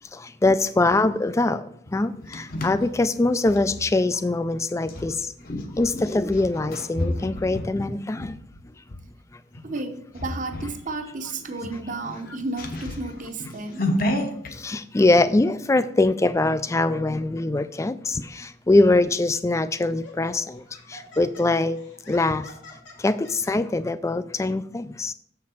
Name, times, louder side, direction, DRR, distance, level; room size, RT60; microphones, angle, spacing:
voice 1, 0.1-1.6 1.9-5.3 5.8-8.4 14.5-20.6 20.9-21.8 22.1-22.5 23.0-25.1, left 2 dB, 15° left, 14 dB, 0.3 m, -23 dB
sound 1, 1.9-3.8 4.8-9.0 9.5-9.8 10.1-10.8 11.1-11.2 11.6-14.5, left 1 dB, 50° left, 1.0 m, -31 dB
voice 2, 9.6-13.9, right 2 dB, 45° right, 7 dB, 0.9 m, -32 dB
Laughter, 19.0-19.2 19.9-23.5, left 2 dB, 85° left, 2.5 m, -47 dB
7.3 x 5.9 x 4.4 m, 0.68 s
head